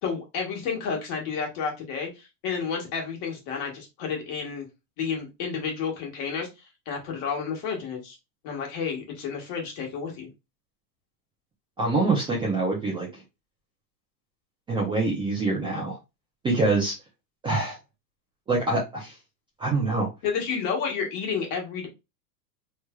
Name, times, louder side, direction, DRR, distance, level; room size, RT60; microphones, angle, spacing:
voice 1, 0.0-4.7 5.0-6.5 6.9-8.2 8.4-10.3 20.2-21.9, left 6 dB, 45° left, 0 dB, 1.4 m, -31 dB
voice 2, 11.8-13.2 14.7-16.0 16.4-16.9 17.4-17.8 18.5-19.2 19.6-20.1, right 3 dB, 10° right, -4 dB, 0.5 m, -25 dB
3.2 x 3.2 x 2.3 m, 0.24 s
supercardioid pair, 135°, 50 cm